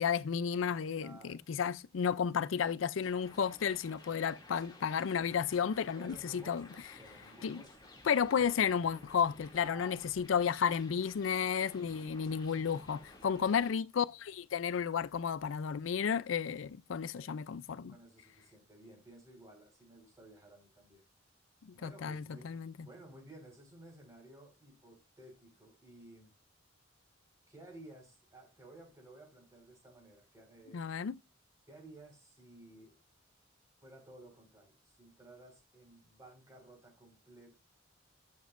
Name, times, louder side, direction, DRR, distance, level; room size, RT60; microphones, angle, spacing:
voice 1, 0.0-6.7 7.4-7.6 8.0-17.9 21.6-22.9 30.7-31.2, left 7 dB, 80° left, 0.4 m, -32 dB
voice 2, 1.0-1.5 6.0-7.9 8.3-8.5 9.5-10.1 13.2-13.7 17.2-17.3 17.9-21.0 21.7-26.3 27.5-30.8 31.7-32.9 33.8-37.5, right 1 dB, 15° right, 4.9 m, -55 dB
sound 1, 3.0-13.7, left 2 dB, 20° left, 2.5 m, -55 dB
11.5 x 7.1 x 2.5 m
head